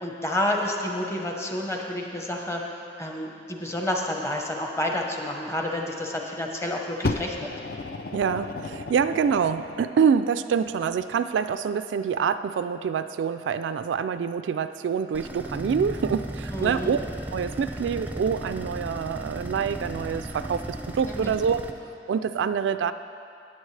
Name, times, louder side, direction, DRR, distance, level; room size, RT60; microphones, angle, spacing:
voice 1, 0.0-2.6 3.0-7.5 16.5-16.9 21.1-21.3, left 1 dB, 15° left, 1 dB, 0.9 m, -29 dB
Fire, 7.0-9.9 10.7-10.8, left 3 dB, 55° left, 0.4 m, -33 dB
voice 2, 8.1-17.0 17.3-21.6 22.1-22.9, right 6 dB, 80° right, 10 dB, 0.3 m, -26 dB
sound 1, 15.1-21.7, right 1 dB, 10° right, 0.5 m, -36 dB
14.5 x 9.1 x 3.3 m, 2.6 s
head